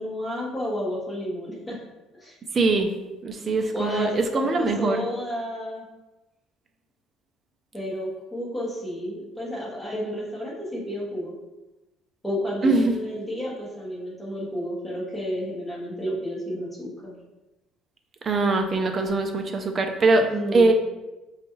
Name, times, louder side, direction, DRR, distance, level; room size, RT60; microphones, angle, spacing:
voice 1, 0.0-1.8 2.2-2.3 3.7-5.8 7.7-11.3 12.2-17.1 20.2-20.7, equal, 5° left, -6 dB, 1.2 m, -31 dB
voice 2, 2.5-2.9 3.2-5.1 12.6-12.9 18.2-20.2 20.5-20.7, right 3 dB, 30° right, 5 dB, 0.5 m, -22 dB
4.9 x 2.4 x 3.1 m, 1.0 s
cardioid pair, 140°, 0 cm